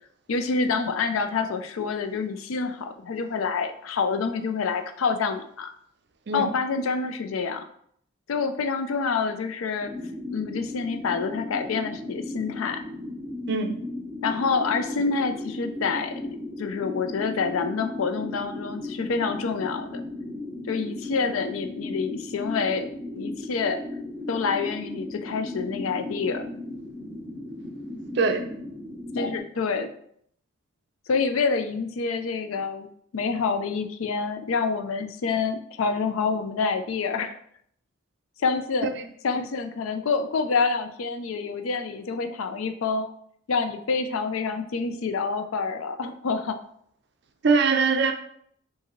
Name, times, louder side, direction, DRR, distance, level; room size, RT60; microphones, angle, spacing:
voice 1, 0.3-5.7 6.3-7.6 8.3-9.9 10.3-12.8 14.2-16.1 16.6-20.0 20.7-22.9 23.2-23.8 24.3-26.4 29.1-29.9 31.1-32.9 33.1-37.4 38.4-38.9 39.2-43.1 43.5-46.6, left 5 dB, 80° left, 7 dB, 0.4 m, -27 dB
sound 1, 9.8-29.4, left 1 dB, 5° right, 0.9 m, -36 dB
voice 2, 47.4-48.1, right 4 dB, 55° right, 6 dB, 0.4 m, -22 dB
4.7 x 2.7 x 3.0 m, 0.66 s
head